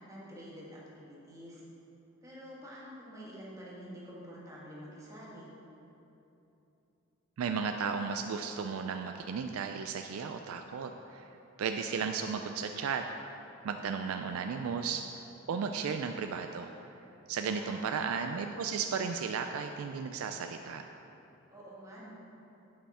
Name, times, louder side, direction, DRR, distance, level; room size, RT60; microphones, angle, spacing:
voice 1, 0.0-1.6 2.2-5.5 17.3-18.1 21.5-22.1, equal, 15° right, -6 dB, 1.6 m, -48 dB
voice 2, 7.4-11.3 11.6-13.0 13.6-15.0 15.5-16.7 17.3-20.8, right 6 dB, 85° right, 6 dB, 0.3 m, -34 dB
8.8 x 5.6 x 4.2 m, 2.9 s
head